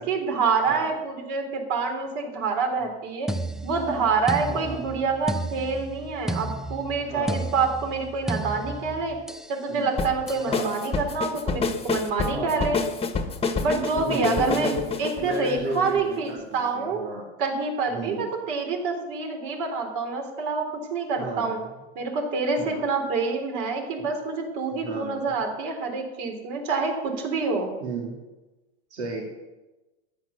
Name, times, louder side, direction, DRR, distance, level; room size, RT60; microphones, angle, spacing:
voice 1, 0.1-3.3 3.6-9.2 9.5-12.8 13.6-14.7 15.0-17.0 17.4-21.6 22.0-27.7, right 4 dB, 55° right, 3 dB, 3.8 m, -27 dB
voice 2, 0.7-1.0 4.5-4.8 7.1-7.5 9.7-9.9 10.4-10.8 12.3-12.7 13.9-17.3 17.9-18.3 21.2-21.5 22.6-22.8 24.0-24.1 24.8-25.4 27.8-28.2 28.9-29.2, right 3 dB, 85° right, -1 dB, 3.0 m, -34 dB
sound 1, 3.3-9.6 10.3-10.6, right 2 dB, ahead, 0.3 m, -33 dB
sound 2, 10.0-16.3, left 4 dB, 15° left, 1.4 m, -28 dB
13.5 x 9.6 x 6.8 m, 1.1 s
hypercardioid pair, 115°, 33 cm